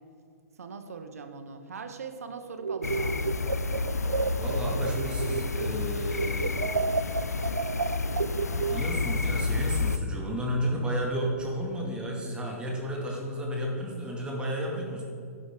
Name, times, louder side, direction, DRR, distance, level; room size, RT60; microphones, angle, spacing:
voice 1, 0.6-3.2 4.7-4.8, right 5 dB, 70° right, 7 dB, 1.2 m, -41 dB
sound 1, 2.6-5.8 6.1-9.2, right 5 dB, 85° right, 0.4 m, -31 dB
sound 2, 2.8-10.0, left 3 dB, 85° left, 0.5 m, -30 dB
voice 2, 4.4-6.6 8.7-15.0, equal, 10° right, -1 dB, 2.3 m, -32 dB
13.0 x 11.0 x 3.8 m, 2.5 s
figure-of-eight pair, 115°, 8 cm